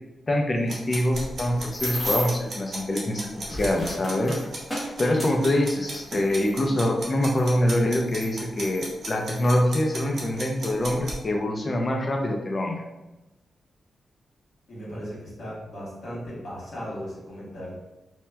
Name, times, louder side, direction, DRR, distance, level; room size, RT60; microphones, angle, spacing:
voice 1, 0.3-4.4 5.0-12.8, left 1 dB, 35° left, 2 dB, 0.4 m, -24 dB
sound 1, 0.7-11.1, right 2 dB, 60° right, 0.7 m, -36 dB
sound 2, 1.1-2.5 3.2-6.5 7.4-7.5 8.1-9.5 10.3-10.5 10.8-11.1, equal, 15° left, 0.7 m, -34 dB
voice 2, 14.7-17.8, equal, 60° left, -7 dB, 1.4 m, -37 dB
2.8 x 2.1 x 2.2 m, 1.0 s
cardioid pair, 95°, 0 cm